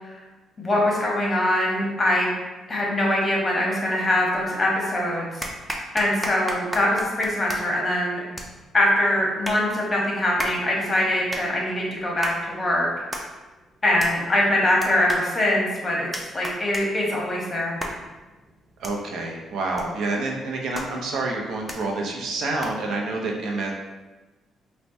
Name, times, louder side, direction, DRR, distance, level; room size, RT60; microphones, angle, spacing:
voice 1, 0.6-2.3 2.7-5.4 5.9-8.2 8.7-12.9 13.8-16.1 16.3-17.8, left 1 dB, 25° left, -3 dB, 1.0 m, -23 dB
sound 1, 4.3-4.9 5.4-23.0, equal, 5° right, 0.5 m, -37 dB
voice 2, 18.8-23.7, right 2 dB, 75° right, 0 dB, 0.5 m, -28 dB
4.3 x 2.1 x 2.6 m, 1.2 s
cardioid pair, 90°, 0 cm